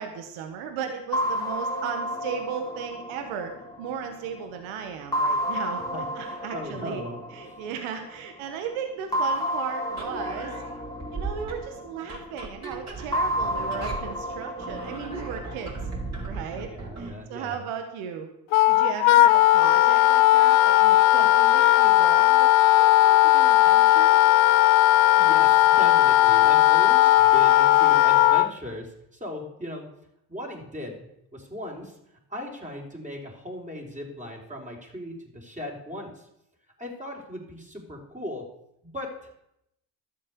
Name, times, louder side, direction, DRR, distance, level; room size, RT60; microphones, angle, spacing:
voice 1, 0.0-3.5 3.8-5.8 6.1-7.0 7.3-10.6 11.1-15.8 16.3-16.7 17.0-18.3 18.7-22.5 22.8-24.2, right 7 dB, 85° right, 6 dB, 1.5 m, -36 dB
sound 1, 1.1-4.5 5.1-8.0 9.1-12.2 13.1-16.2, equal, 5° left, 2.7 m, -31 dB
voice 2, 5.9-7.2 7.5-7.6 16.7-17.6 25.2-29.9 30.3-32.0 32.3-36.3 36.8-38.4 38.8-39.1, left 1 dB, 15° right, 0 dB, 4.2 m, -38 dB
sound 2, 9.9-17.2, right 3 dB, 35° right, 5.0 m, -37 dB
Wind instrument woodwind instrument, 18.5-28.5, left 15 dB, 80° left, 0.7 m, -17 dB
12.0 x 7.5 x 6.9 m, 0.81 s
supercardioid pair, 55°, 48 cm